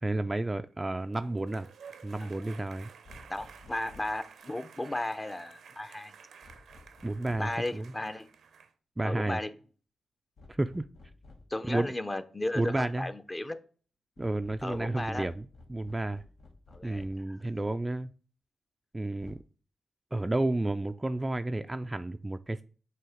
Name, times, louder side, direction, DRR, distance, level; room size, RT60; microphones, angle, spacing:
voice 1, 0.0-1.7 2.0-2.9 7.0-7.9 9.0-9.4 10.5-10.9 11.7-11.9 12.5-13.1 14.2-16.2 16.8-18.1 18.9-19.4 20.1-22.6, right 2 dB, 15° right, 0.3 m, -31 dB
sound 1, 0.8-8.7, right 6 dB, 90° right, 0.7 m, -53 dB
sound 2, 3.0-4.2 6.4-7.6 10.4-11.6 14.2-17.3 19.2-19.4, left 2 dB, 75° left, 1.2 m, -54 dB
voice 2, 3.3-6.1 7.4-8.3 9.0-9.5 11.5-13.6 14.6-15.3 16.7-17.4, left 1 dB, 20° left, 0.6 m, -35 dB
7.7 x 2.8 x 4.9 m
cardioid pair, 100°, 0 cm